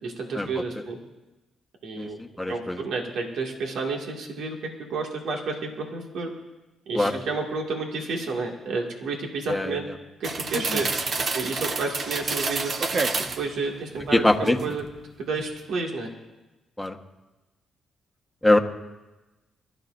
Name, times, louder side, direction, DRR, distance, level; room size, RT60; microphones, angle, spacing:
voice 1, 0.0-1.0 1.8-2.2 2.5-6.3 6.9-9.9 10.2-10.9 11.3-12.7 13.2-14.8 15.2-16.1, right 3 dB, 75° right, 0 dB, 2.1 m, -31 dB
voice 2, 2.0-2.8 6.9-7.1 9.5-9.8 10.5-10.8 14.1-14.6 16.8-17.0 18.4-18.6, left 1 dB, 5° left, 3 dB, 1.2 m, -23 dB
sound 1, 10.2-13.5 14.0-14.9 15.2-15.5, right 4 dB, 50° right, 1.0 m, -29 dB
24.0 x 13.0 x 2.6 m, 1.1 s
cardioid pair, 80°, 0 cm